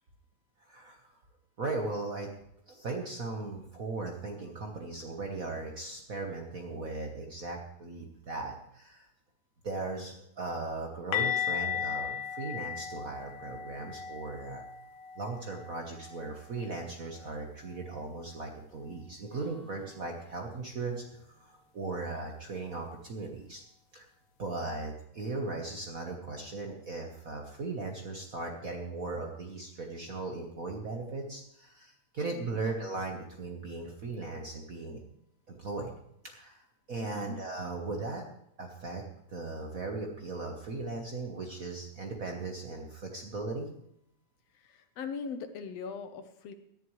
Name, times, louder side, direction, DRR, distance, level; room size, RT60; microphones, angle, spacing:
voice 1, 0.7-1.1 1.6-2.3 2.7-9.1 9.6-14.6 15.2-23.6 23.9-24.1 24.4-35.0 35.5-35.9 36.2-36.6 36.9-38.2 38.6-39.0 39.3-43.7, right 3 dB, 65° right, 2 dB, 0.8 m, -38 dB
sound 1, 11.1-16.9 17.2-17.4 17.7-17.9 21.1-21.2, left 9 dB, 90° left, 2.2 m, -36 dB
Acoustic guitar / Strum, 19.3-22.9, right 1 dB, 5° right, 4.5 m, -60 dB
voice 2, 32.4-32.7 37.0-37.3 44.5-46.5, left 5 dB, 70° left, 8 dB, 1.9 m, -41 dB
18.0 x 11.0 x 3.2 m, 0.75 s
omnidirectional pair, 3.4 m